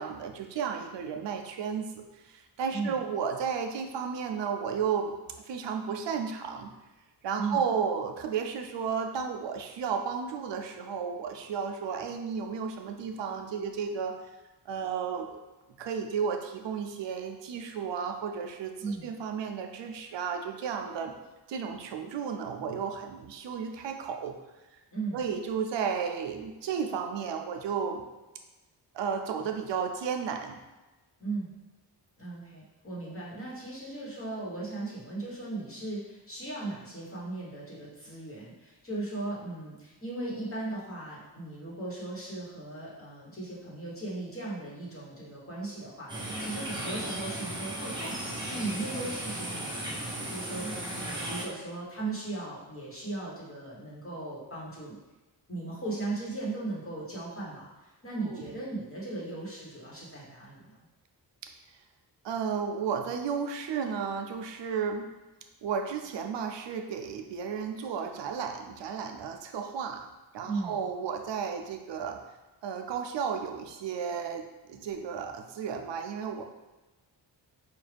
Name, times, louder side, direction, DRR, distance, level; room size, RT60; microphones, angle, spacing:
voice 1, 0.0-5.1 5.4-6.7 7.2-14.1 14.7-15.4 15.8-21.1 21.5-24.3 25.1-28.0 28.9-30.6 58.2-58.5 62.2-65.1 65.6-70.1 70.3-72.2 72.6-74.4 74.7-76.4, right 6 dB, 75° right, 4 dB, 0.5 m, -33 dB
voice 2, 24.9-25.2 31.2-31.5 32.2-48.2 48.5-54.9 55.5-60.8 70.4-70.8, right 2 dB, 30° left, -6 dB, 1.2 m, -37 dB
sound 1, 46.1-51.5, right 1 dB, 10° right, 0.7 m, -36 dB
4.9 x 2.4 x 3.3 m, 1.1 s
wide cardioid pair, 150°, 43 cm